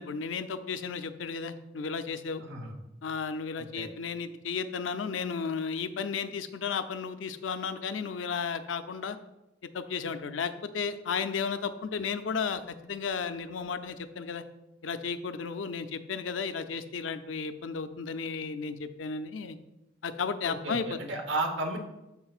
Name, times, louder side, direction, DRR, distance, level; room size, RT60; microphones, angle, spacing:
voice 1, 0.0-2.4 3.0-9.2 9.7-14.4 14.8-19.6 20.0-21.0, left 5 dB, 85° left, 10 dB, 0.5 m, -34 dB
voice 2, 2.4-2.7 3.6-3.9 20.4-21.8, right 2 dB, 70° right, 4 dB, 1.0 m, -33 dB
12.5 x 4.4 x 2.4 m, 0.95 s
head